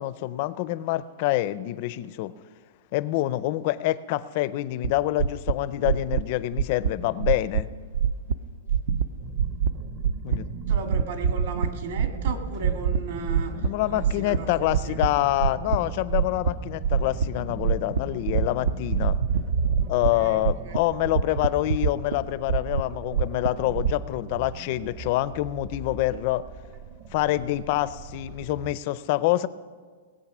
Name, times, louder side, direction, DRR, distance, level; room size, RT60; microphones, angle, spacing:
voice 1, 0.0-2.3 2.9-7.7 10.2-10.5 13.5-19.2 19.9-26.4 27.1-29.5, left 16 dB, 35° left, 16 dB, 0.4 m, -26 dB
sound 1, 4.8-4.9 5.2-5.5 5.8-6.2 6.5-6.9 7.2-7.6 7.9-8.3 8.7-9.1 9.3-9.7 10.0-10.4 10.7-11.7 12.0-12.3 12.6-13.0 13.3-13.7 14.0-15.1 15.4-15.8 16.1-16.5 16.8-17.3 17.6-18.0 18.3-20.1 20.4-20.8 21.0-22.2 22.5-24.0, right 7 dB, 80° right, 0.6 m, -24 dB
sound 2, 9.2-28.8, right 4 dB, 25° right, 0.5 m, -40 dB
voice 2, 10.3-14.5 14.8-15.0 19.8-20.8, right 4 dB, 55° right, 5 dB, 1.6 m, -37 dB
19.0 x 8.7 x 6.0 m, 1.5 s
supercardioid pair, 180°, 0 cm